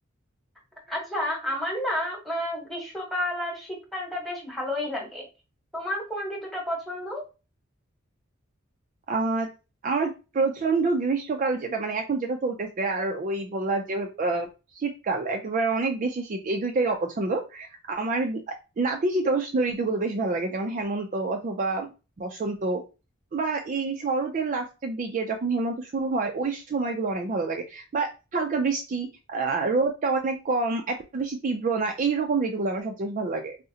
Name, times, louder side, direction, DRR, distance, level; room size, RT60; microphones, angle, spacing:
voice 1, 0.9-5.2 5.7-7.3, left 1 dB, ahead, -1 dB, 1.0 m, -31 dB
voice 2, 9.1-9.5 9.8-14.5 14.7-21.9 22.2-22.8 23.3-33.6, right 3 dB, 40° right, 3 dB, 0.4 m, -27 dB
3.6 x 2.0 x 2.7 m, 0.30 s
head